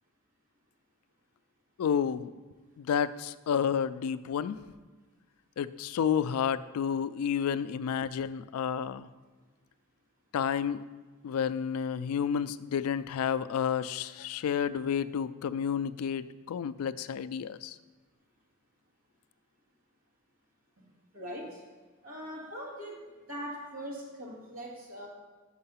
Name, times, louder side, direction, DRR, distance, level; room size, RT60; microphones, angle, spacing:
voice 1, 1.8-2.3 2.8-4.6 5.6-9.1 10.3-10.8 11.2-17.8, left 7 dB, 90° left, 15 dB, 0.3 m, -30 dB
voice 2, 21.1-21.6 22.0-23.0 23.3-25.1, equal, 75° right, -4 dB, 2.4 m, -41 dB
6.1 x 5.6 x 5.5 m, 1.3 s
head